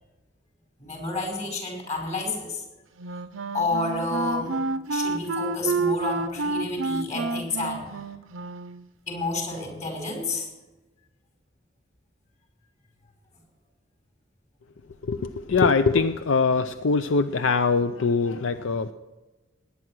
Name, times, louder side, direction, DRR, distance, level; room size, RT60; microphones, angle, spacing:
voice 1, 0.8-2.6 3.5-4.6 4.9-7.9 9.1-10.5, left 3 dB, 40° left, 2 dB, 5.0 m, -30 dB
Wind instrument woodwind instrument, 3.0-8.9, right 3 dB, 90° right, 0.7 m, -29 dB
voice 2, 15.0-18.9, left 4 dB, 75° left, 11 dB, 0.5 m, -23 dB
19.0 x 9.8 x 6.2 m, 1.1 s
head